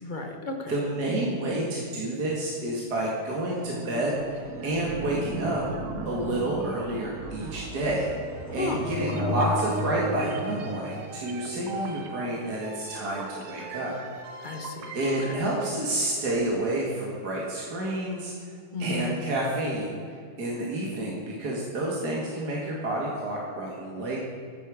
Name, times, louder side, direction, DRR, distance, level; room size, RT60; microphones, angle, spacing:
voice 1, 0.0-0.7 8.5-9.6 14.4-14.9 18.7-19.3, left 2 dB, 25° left, 3 dB, 1.2 m, -33 dB
voice 2, 0.7-5.6 6.1-8.1 8.5-13.9 14.9-18.3 18.8-20.0 20.4-24.2, right 1 dB, 50° right, -3 dB, 2.3 m, -29 dB
sound 1, 3.5-15.4, right 1 dB, 75° right, 2.2 m, -36 dB
14.0 x 8.5 x 6.4 m, 2.3 s
omnidirectional pair, 2.4 m